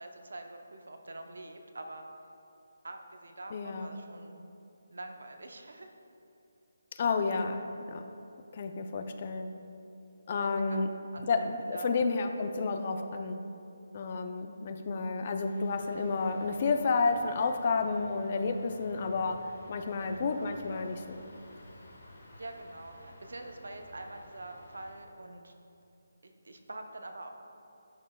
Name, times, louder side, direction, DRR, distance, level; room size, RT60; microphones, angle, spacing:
voice 1, 0.0-2.1 2.8-4.4 4.9-5.9 10.3-10.8 11.1-11.9 19.8-20.8 22.4-25.5 26.2-27.3, right 2 dB, 80° right, 5 dB, 0.6 m, -45 dB
voice 2, 3.5-3.9 6.9-8.1 8.5-9.5 10.3-10.9 11.3-13.4 13.9-21.2, left 4 dB, 40° left, 7 dB, 0.4 m, -31 dB
sound 1, 15.4-24.9, left 1 dB, 65° left, 1.5 m, -53 dB
10.5 x 5.2 x 2.2 m, 2.7 s
figure-of-eight pair, 160°, 0 cm